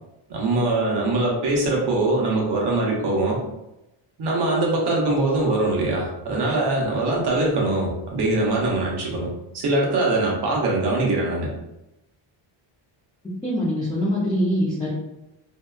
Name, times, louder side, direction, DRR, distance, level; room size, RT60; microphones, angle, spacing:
voice 1, 0.3-3.4 4.2-9.3 9.5-11.5, right 2 dB, 50° right, -3 dB, 0.8 m, -22 dB
voice 2, 13.4-14.9, equal, 10° left, -9 dB, 0.5 m, -23 dB
2.8 x 2.2 x 2.2 m, 0.93 s
cardioid pair, 145°, 50 cm